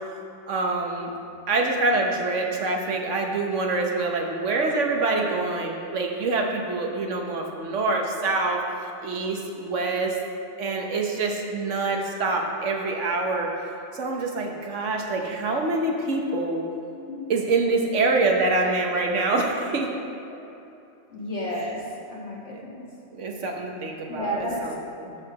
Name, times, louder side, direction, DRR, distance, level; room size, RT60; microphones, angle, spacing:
voice 1, 0.5-1.1 1.5-8.6 9.0-10.1 10.6-13.5 13.9-16.7 17.3-19.9 22.5-22.6 23.1-25.2, right 3 dB, 90° right, 1 dB, 1.4 m, -25 dB
voice 2, 21.1-21.8 22.1-22.8 24.1-24.7, equal, 65° left, -4 dB, 2.2 m, -31 dB
11.5 x 4.7 x 6.5 m, 2.7 s
omnidirectional pair, 1.2 m